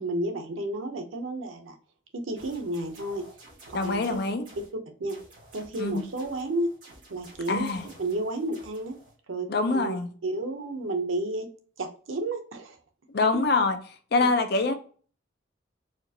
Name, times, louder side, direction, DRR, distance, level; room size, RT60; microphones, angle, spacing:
voice 1, 0.0-1.8 2.1-3.2 3.7-4.2 5.0-5.2 5.5-6.7 7.1-7.7 8.0-9.0 9.3-10.0 10.2-11.5 11.8-12.8 13.3-13.4 14.1-14.3, right 2 dB, 85° right, 0.7 m, -31 dB
sound 1, 2.4-4.7 5.1-9.2, right 1 dB, 45° right, 1.9 m, -51 dB
voice 2, 3.7-4.4 5.8-6.0 7.5-7.9 9.5-10.1 13.1-13.8 14.1-14.7, left 3 dB, 55° left, 0.5 m, -24 dB
4.3 x 2.4 x 2.7 m
head